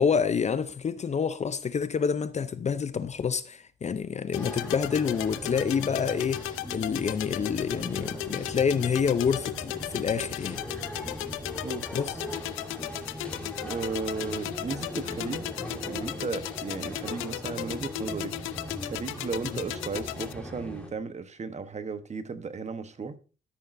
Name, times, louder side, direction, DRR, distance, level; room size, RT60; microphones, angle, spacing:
voice 1, 0.0-10.6 11.9-12.1, left 6 dB, 35° left, 0.6 m, -28 dB
sound 1, 4.3-20.3, left 14 dB, 90° left, 0.5 m, -36 dB
sound 2, 4.3-20.9, equal, 5° left, 2.6 m, -40 dB
voice 2, 13.6-15.5 15.8-18.3 18.8-23.2, right 4 dB, 35° right, 1.0 m, -35 dB
13.0 x 6.3 x 2.6 m
cardioid pair, 90°, 20 cm